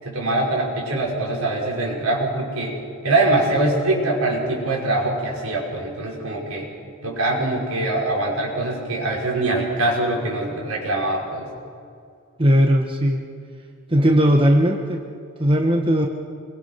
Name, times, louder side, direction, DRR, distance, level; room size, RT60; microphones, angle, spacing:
voice 1, 0.0-2.8 3.0-6.7 7.0-11.5, right 2 dB, 75° right, -2 dB, 5.9 m, -23 dB
voice 2, 12.4-13.2 13.9-15.0 15.4-16.1, equal, 25° right, 2 dB, 1.4 m, -17 dB
27.5 x 23.0 x 5.9 m, 2.3 s
head